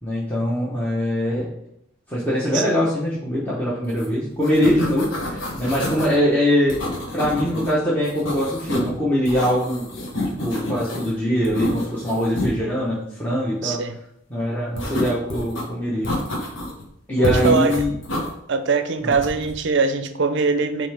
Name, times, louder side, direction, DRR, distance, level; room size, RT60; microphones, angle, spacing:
voice 1, 0.0-1.5 2.1-6.8 7.1-9.9 10.4-13.8 14.3-16.1 17.1-17.9 19.0-19.1, equal, 10° left, -8 dB, 1.0 m, -22 dB
sound 1, 3.9-4.1 4.3-6.1 6.7-7.7 8.0-8.9 9.2-11.1 11.4-12.5 14.8-15.6 16.0-16.8 17.2-18.3 19.1-19.5, left 1 dB, 60° left, 1.2 m, -28 dB
voice 2, 13.6-14.0 17.2-17.8 18.5-20.9, right 4 dB, 55° right, 9 dB, 0.5 m, -22 dB
9.3 x 3.2 x 3.4 m, 0.78 s
head